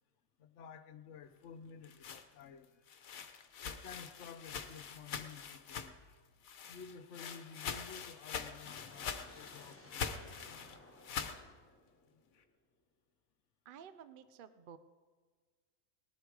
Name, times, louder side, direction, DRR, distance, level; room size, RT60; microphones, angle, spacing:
voice 1, 0.4-2.7 3.6-6.0 6.7-10.4, left 6 dB, 65° left, 11 dB, 1.0 m, -52 dB
sound 1, 1.6-6.1 6.4-11.4, left 7 dB, 85° left, 1.3 m, -44 dB
sound 2, 8.6-12.6, left 1 dB, 10° left, 1.3 m, -59 dB
voice 2, 13.7-14.8, right 8 dB, 50° right, 12 dB, 0.6 m, -53 dB
19.0 x 11.5 x 4.8 m, 1.5 s
omnidirectional pair, 1.4 m